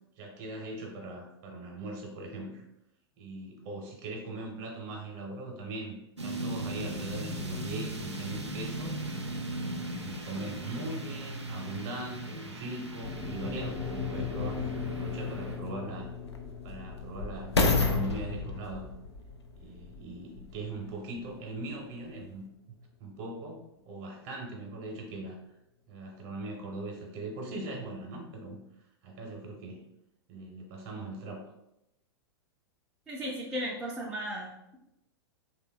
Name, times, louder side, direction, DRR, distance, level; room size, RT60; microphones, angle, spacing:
voice 1, 0.2-2.6 3.2-5.9 6.2-9.0 9.5-16.1 16.6-18.9 19.6-25.4 25.9-28.6 29.0-29.8 30.3-31.5, right 2 dB, 35° right, 1 dB, 0.6 m, -40 dB
sound 1, 6.2-15.6, right 1 dB, 90° right, 0.4 m, -38 dB
sound 2, 13.0-21.2, left 6 dB, 60° left, 0.8 m, -39 dB
sound 3, 14.5-14.6 15.4-20.7 21.3-21.4, left 3 dB, 75° left, 0.4 m, -31 dB
voice 2, 33.1-34.8, equal, 5° right, -5 dB, 0.3 m, -36 dB
3.1 x 2.1 x 2.2 m, 0.84 s
figure-of-eight pair, 100°, 14 cm